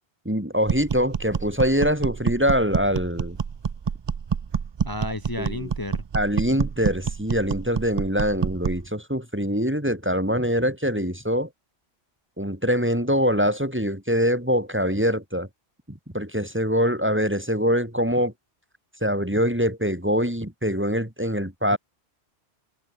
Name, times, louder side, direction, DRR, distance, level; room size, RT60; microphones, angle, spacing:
voice 1, 0.2-3.4 5.4-5.7 6.1-11.5 12.4-15.5 15.9-18.3 19.0-21.8, equal, 10° right, 2.4 m, -24 dB
sound 1, 0.7-8.9, right 6 dB, 45° right, 0.3 m, -28 dB
voice 2, 4.8-6.0 21.7-21.8, left 1 dB, 20° left, 1.6 m, -32 dB
omnidirectional pair, 1.1 m